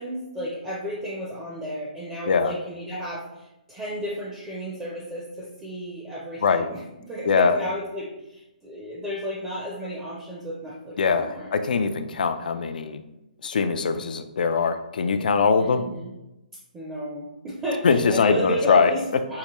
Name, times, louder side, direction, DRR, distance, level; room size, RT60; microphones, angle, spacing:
voice 1, 0.0-11.5 15.6-16.1 16.7-19.4, equal, 10° right, -5 dB, 0.5 m, -33 dB
voice 2, 7.2-7.6 11.0-13.0 13.4-15.8 17.8-18.9, left 5 dB, 75° left, 9 dB, 0.3 m, -22 dB
4.6 x 2.1 x 2.9 m, 0.95 s
hypercardioid pair, 155°, 5 cm